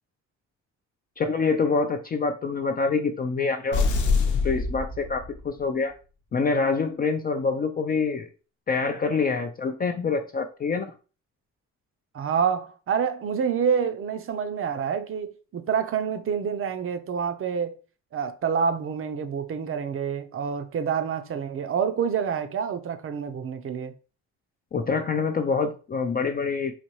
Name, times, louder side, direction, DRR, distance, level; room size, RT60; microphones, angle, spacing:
voice 1, 1.2-3.9 4.4-5.9 6.3-8.3 8.7-10.9 24.7-26.7, left 4 dB, 30° left, 0.4 m, -26 dB
sound 1, 3.7-5.6, left 4 dB, 75° left, 0.8 m, -25 dB
voice 2, 12.1-17.7 18.1-23.9, right 7 dB, 45° right, 0.6 m, -27 dB
4.2 x 2.7 x 3.0 m
cardioid pair, 90°, 30 cm